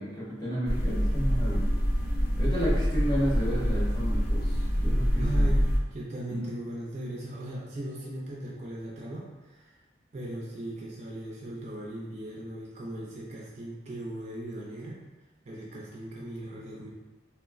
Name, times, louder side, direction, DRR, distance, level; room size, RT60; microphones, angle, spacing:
voice 1, 0.0-1.7 2.4-5.5 6.3-6.5, equal, 25° left, -8 dB, 0.7 m, -32 dB
sound 1, 0.7-5.8, equal, 50° left, 0.4 m, -26 dB
voice 2, 5.1-5.6 5.9-9.7 10.1-15.0 15.5-16.9, right 1 dB, 35° right, -4 dB, 0.3 m, -38 dB
3.2 x 2.0 x 2.4 m, 1.2 s
head